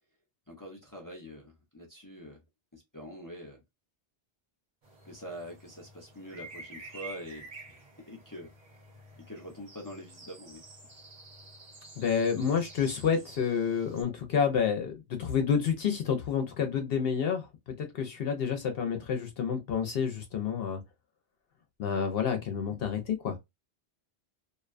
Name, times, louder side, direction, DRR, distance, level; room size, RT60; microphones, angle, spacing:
voice 1, 0.5-2.4 2.7-3.6 5.0-8.5 9.2-10.6, equal, 20° left, 0.6 m, -45 dB
sound 1, 4.8-14.0, right 2 dB, 45° right, 1.0 m, -50 dB
voice 2, 12.0-17.5 17.8-20.8 21.8-23.4, left 7 dB, 65° left, 0.8 m, -29 dB
2.5 x 2.2 x 2.4 m
omnidirectional pair, 1.1 m